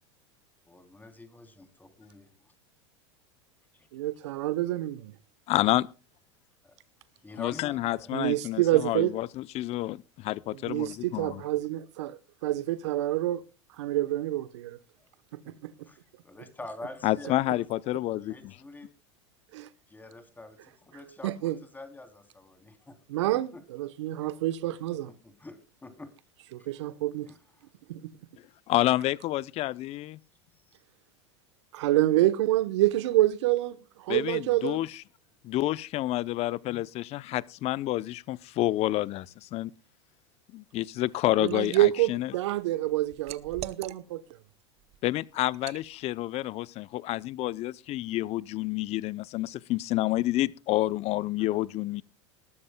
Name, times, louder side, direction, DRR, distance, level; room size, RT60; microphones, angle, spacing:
voice 1, 0.7-2.3 3.7-3.9 6.6-6.8 7.2-8.1 15.0-15.1 15.5-15.6 15.8-16.0 16.2-17.6 18.2-18.9 19.9-23.0 23.3-23.6 25.1-26.1 26.6-26.7 27.3-27.4 30.7-30.8, left 2 dB, 10° left, 3.2 m, -46 dB
voice 2, 3.9-5.1 8.1-9.1 10.7-13.4 13.8-14.8 15.6-15.7 19.5-19.7 21.2-21.6 23.1-25.1 26.5-27.3 27.9-28.0 31.7-34.8 41.4-44.2, right 15 dB, 70° right, 1.0 m, -27 dB
voice 3, 5.5-5.9 7.4-11.4 17.0-18.5 28.7-30.2 34.1-34.9 35.4-39.7 40.5-42.3 45.0-52.0, left 16 dB, 45° left, 0.6 m, -29 dB
Liquid, 41.0-41.8 42.2-44.3 44.8-45.0 45.5-45.9, right 14 dB, 45° right, 0.8 m, -43 dB
20.0 x 13.0 x 2.2 m
hypercardioid pair, 85°, 15 cm